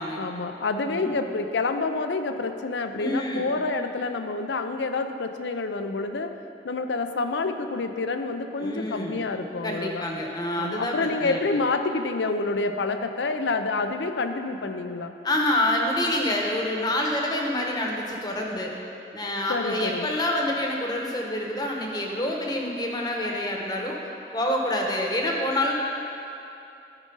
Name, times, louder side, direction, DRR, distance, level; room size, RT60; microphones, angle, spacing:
voice 1, 0.2-6.3 6.6-10.0 10.6-15.1 19.5-20.1, left 3 dB, 90° left, 8 dB, 0.6 m, -28 dB
voice 2, 0.9-1.2 2.9-3.5 8.6-9.2 9.6-11.4 15.2-18.7 19.1-24.0 24.3-25.7, left 1 dB, 25° left, 0 dB, 1.0 m, -27 dB
13.0 x 5.0 x 5.4 m, 2.8 s
head